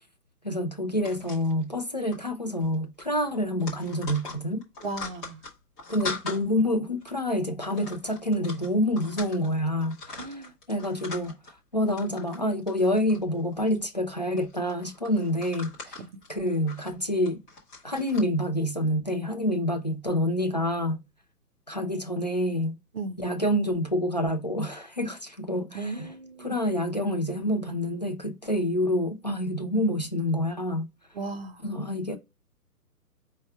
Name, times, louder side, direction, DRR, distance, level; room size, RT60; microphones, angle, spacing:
voice 1, 0.4-4.6 5.9-10.4 10.7-11.4 11.7-15.7 16.3-17.4 17.8-21.0 21.7-22.8 23.2-26.1 26.4-30.9 31.6-32.2, left 1 dB, 30° left, 0.4 m, -27 dB
sound 1, 1.0-1.8 2.1-2.3 2.6-2.7 3.0-6.4 7.0-7.2 7.6-9.5 9.8-11.5 11.9-12.4 12.7-13.8 14.4-18.2, left 4 dB, 10° left, 0.7 m, -41 dB
voice 2, 4.8-5.4 10.2-10.5 16.0-16.1 22.9-23.2 25.7-26.6 31.1-31.6, right 3 dB, 40° right, 0.6 m, -36 dB
5.1 x 2.2 x 3.3 m
figure-of-eight pair, 130°, 47 cm